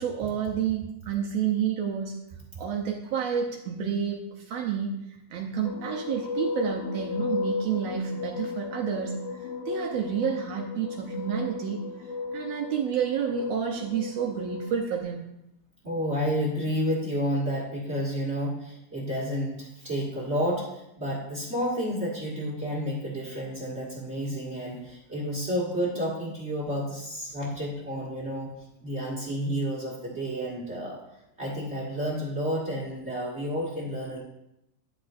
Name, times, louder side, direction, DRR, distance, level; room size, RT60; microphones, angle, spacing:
voice 1, 0.0-2.2 2.6-4.9 5.3-9.2 9.6-11.8 12.3-15.2, right 8 dB, 85° right, 0 dB, 1.4 m, -29 dB
sound 1, 5.6-15.0, left 4 dB, 75° left, 2.6 m, -35 dB
voice 2, 15.8-28.5 28.8-31.0 31.4-34.2, equal, 30° right, -4 dB, 1.4 m, -30 dB
11.5 x 8.5 x 2.6 m, 0.85 s
omnidirectional pair, 4.0 m